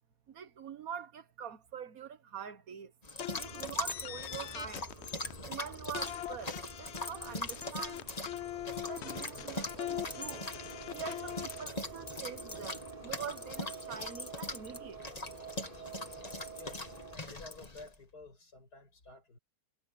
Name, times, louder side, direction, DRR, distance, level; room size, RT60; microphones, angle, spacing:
voice 1, 0.3-2.9 3.3-4.9 5.4-8.0 8.8-10.5 10.9-15.0, right 7 dB, 65° right, 1.6 m, -45 dB
sound 1, 3.0-17.9, left 2 dB, 25° left, 2.1 m, -42 dB
sound 2, 3.2-5.5 5.9-11.6, left 13 dB, 70° left, 0.6 m, -42 dB
sound 3, 3.3-17.2, right 3 dB, 30° right, 3.8 m, -49 dB
voice 2, 16.5-19.4, left 3 dB, 85° left, 6.8 m, -52 dB
omnidirectional pair, 1.7 m